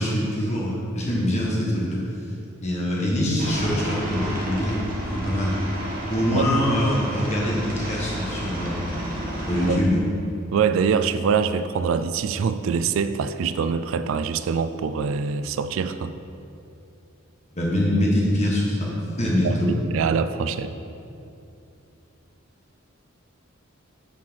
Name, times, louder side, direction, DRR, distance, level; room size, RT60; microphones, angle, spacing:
voice 1, 0.0-2.0 2.6-4.8 5.1-5.6 6.1-8.9 9.5-10.0 17.5-18.9 19.2-19.7, left 1 dB, 35° left, -4 dB, 1.6 m, -24 dB
Aircraft, 3.4-9.7, equal, 45° right, 1.4 m, -31 dB
voice 2, 10.5-16.1 19.4-19.6 19.9-20.7, right 6 dB, 75° right, 11 dB, 0.3 m, -24 dB
7.2 x 4.6 x 6.3 m, 2.6 s
head